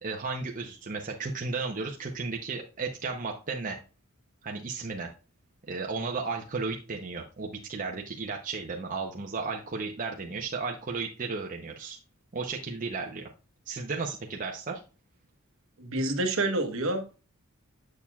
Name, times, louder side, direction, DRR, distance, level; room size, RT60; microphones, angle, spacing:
voice 1, 0.0-3.8 4.4-5.1 5.7-12.0 12.3-13.3 13.7-14.8, right 4 dB, 40° right, 0.7 m, -34 dB
voice 2, 15.8-17.2, right 2 dB, 65° right, 1.1 m, -28 dB
7.2 x 6.5 x 2.3 m
head